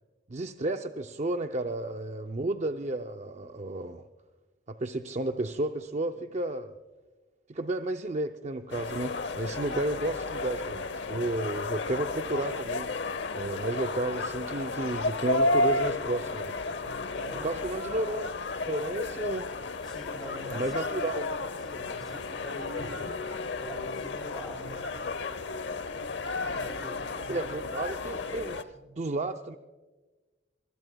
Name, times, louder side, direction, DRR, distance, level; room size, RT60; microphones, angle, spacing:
voice 1, 0.3-4.0 4.7-6.7 7.5-12.9 13.4-16.5 17.4-18.3 18.7-19.5 20.5-21.3 27.3-28.6 29.0-29.6, right 2 dB, 40° right, 7 dB, 0.5 m, -32 dB
sound 1, 8.7-28.6, left 3 dB, 75° left, 0.8 m, -33 dB
voice 2, 16.7-18.0 19.8-20.8 21.7-24.9 26.4-27.5 28.7-28.9, equal, ahead, 3 dB, 3.0 m, -45 dB
23.5 x 20.5 x 2.3 m, 1.2 s
head